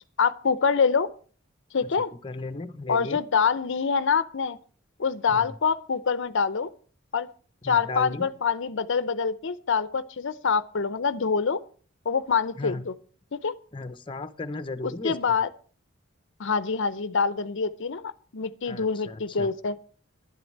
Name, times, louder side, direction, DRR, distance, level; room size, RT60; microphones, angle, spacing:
voice 1, 0.2-1.1 1.7-2.1 2.9-4.6 5.0-6.7 7.1-7.3 7.6-11.6 12.1-12.9 13.3-13.5 14.8-15.5 16.4-19.8, left 5 dB, 60° left, 16 dB, 0.6 m, -25 dB
voice 2, 2.1-3.2 5.3-5.6 7.6-8.3 12.6-12.8 13.7-15.2 18.7-19.5, left 2 dB, 25° left, 11 dB, 0.8 m, -35 dB
11.0 x 7.9 x 7.3 m, 0.43 s
head